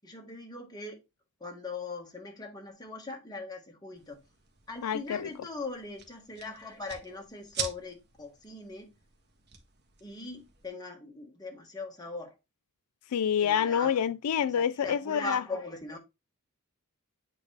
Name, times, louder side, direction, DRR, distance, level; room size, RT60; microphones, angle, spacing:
voice 1, 0.0-1.0 1.4-4.2 4.7-8.9 10.0-12.3 13.4-14.0 14.5-16.0, left 3 dB, 20° left, 1.6 m, -40 dB
sound 1, 3.9-10.7, right 6 dB, 50° right, 1.4 m, -44 dB
voice 2, 4.8-5.3 13.1-15.4, left 8 dB, 90° left, 0.4 m, -27 dB
8.4 x 4.0 x 3.3 m
head